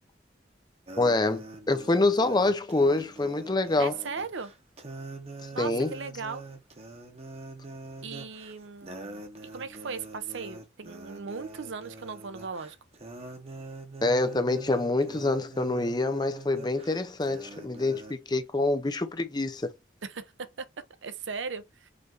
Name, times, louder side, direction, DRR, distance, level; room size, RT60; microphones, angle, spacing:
sound 1, 0.9-18.1, right 2 dB, 35° right, 1.0 m, -44 dB
voice 1, 1.0-3.9 5.6-5.9 14.0-19.7, left 2 dB, 20° left, 0.6 m, -26 dB
voice 2, 3.8-4.5 5.5-6.4 8.0-9.2 9.5-12.8 20.0-20.7 21.0-21.9, right 5 dB, 85° right, 0.7 m, -37 dB
5.1 x 2.6 x 3.8 m
head